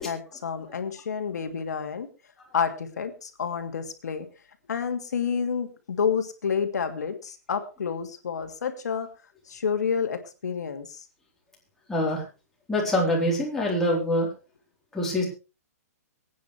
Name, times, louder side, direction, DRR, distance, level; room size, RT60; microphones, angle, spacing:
voice 1, 0.0-2.1 2.5-4.3 4.7-9.1 9.5-11.0, left 6 dB, 85° left, 6 dB, 2.6 m, -29 dB
voice 2, 11.9-12.2 12.7-14.3 14.9-15.2, left 1 dB, 5° left, -4 dB, 3.9 m, -24 dB
24.0 x 9.3 x 3.3 m, 0.32 s
hypercardioid pair, 170°, 9 cm